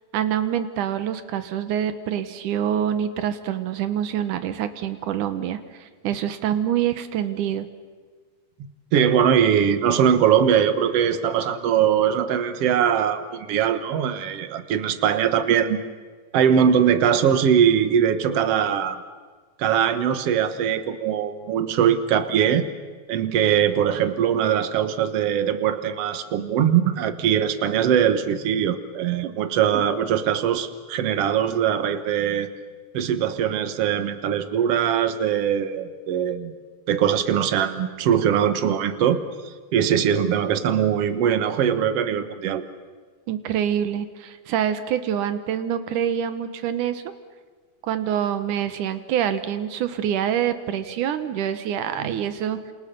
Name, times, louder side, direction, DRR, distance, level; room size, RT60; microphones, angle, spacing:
voice 1, 0.1-7.7 29.2-29.3 43.3-47.0 47.8-52.6, right 9 dB, 85° right, 10 dB, 2.7 m, -26 dB
voice 2, 8.9-15.8 16.3-19.0 19.6-22.7 23.1-32.5 32.9-36.5 36.9-42.6 52.0-52.1, right 8 dB, 60° right, 10 dB, 2.2 m, -21 dB
29.0 x 28.0 x 6.9 m, 1.4 s
omnidirectional pair, 3.5 m